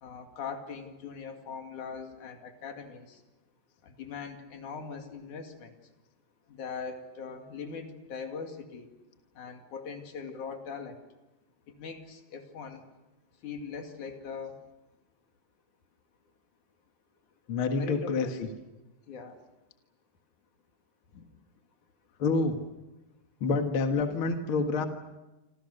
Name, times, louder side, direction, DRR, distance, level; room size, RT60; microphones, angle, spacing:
voice 1, 0.0-3.2 3.8-5.8 6.5-8.9 9.4-11.0 11.7-12.8 13.4-14.6 17.7-18.5 19.1-19.4 21.1-21.2, left 5 dB, 65° left, 4 dB, 3.8 m, -41 dB
voice 2, 17.5-18.5 22.2-22.6 23.4-24.9, left 4 dB, 45° left, 5 dB, 2.1 m, -27 dB
28.0 x 26.5 x 6.6 m, 1.0 s
omnidirectional pair, 3.9 m